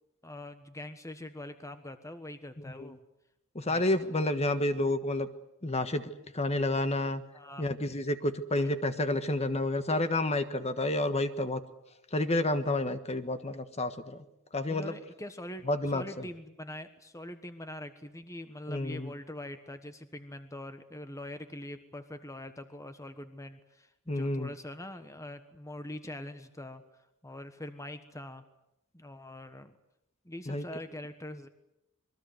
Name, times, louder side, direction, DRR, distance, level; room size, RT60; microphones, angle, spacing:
voice 1, 0.2-3.0 3.6-3.8 7.3-7.7 8.6-8.7 14.7-26.8 27.2-28.4 28.9-29.8 30.2-31.5, left 1 dB, 15° left, 9 dB, 1.3 m, -43 dB
voice 2, 3.5-5.3 5.6-7.2 7.6-11.6 12.1-14.2 14.5-14.9 15.7-16.0 18.7-19.1 24.1-24.5 30.5-30.6, left 1 dB, 30° left, 10 dB, 1.4 m, -30 dB
27.0 x 22.0 x 8.0 m, 0.87 s
head